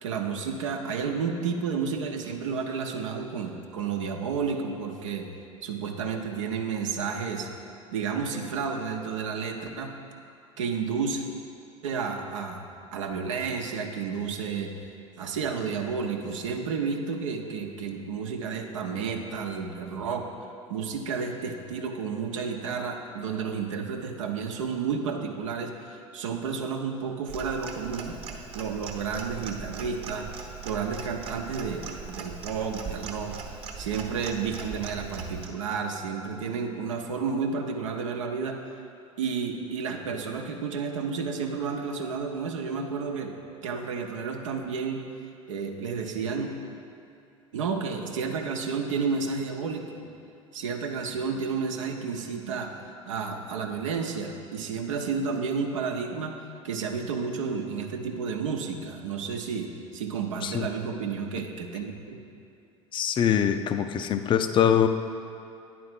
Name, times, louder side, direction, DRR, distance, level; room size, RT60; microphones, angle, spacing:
voice 1, 0.0-5.3 5.6-7.5 7.9-10.0 10.6-11.3 11.8-14.7 15.2-20.3 20.7-28.2 28.5-30.3 30.6-33.3 33.8-38.6 39.2-43.3 43.6-45.1 45.5-46.5 47.5-50.1 50.5-52.7 53.0-56.4 56.6-62.2, right 5 dB, 70° right, 3 dB, 0.8 m, -31 dB
Clock, 27.3-35.5, right 5 dB, 40° right, 1.1 m, -40 dB
voice 2, 62.9-64.9, left 9 dB, 30° left, 9 dB, 0.5 m, -23 dB
9.4 x 4.3 x 5.9 m, 2.6 s
figure-of-eight pair, 75°, 17 cm